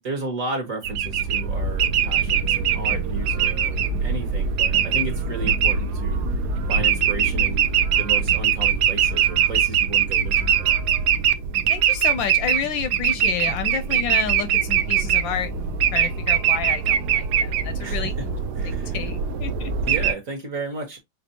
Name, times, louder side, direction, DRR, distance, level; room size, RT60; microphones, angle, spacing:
voice 1, 0.0-6.2 6.7-7.7 8.0-10.9 17.8-18.1 18.6-19.0 19.8-21.0, right 2 dB, 45° right, 1.3 m, -33 dB
sound 1, 0.8-20.1, right 8 dB, 75° right, 0.9 m, -22 dB
voice 2, 11.7-18.3 18.6-19.7, left 8 dB, 75° left, 1.2 m, -30 dB
5.2 x 3.3 x 2.7 m
omnidirectional pair, 2.3 m